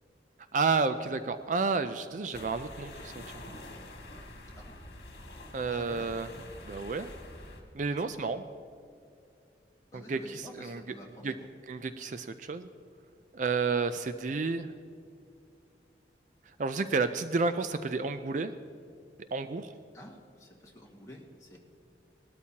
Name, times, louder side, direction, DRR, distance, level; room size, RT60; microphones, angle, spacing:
voice 1, 0.5-3.2 5.5-6.3 6.6-7.1 7.7-8.4 9.9-10.8 11.2-11.3 11.7-12.7 13.3-14.7 16.6-18.5 19.3-19.7, right 4 dB, 45° right, 10 dB, 0.4 m, -31 dB
sound 1, 2.3-7.6, left 1 dB, 60° left, 2.0 m, -46 dB
voice 2, 5.6-6.1 8.0-8.3 9.9-11.5 19.9-21.6, left 1 dB, 20° left, -2 dB, 1.8 m, -49 dB
19.5 x 13.0 x 2.9 m, 2.4 s
head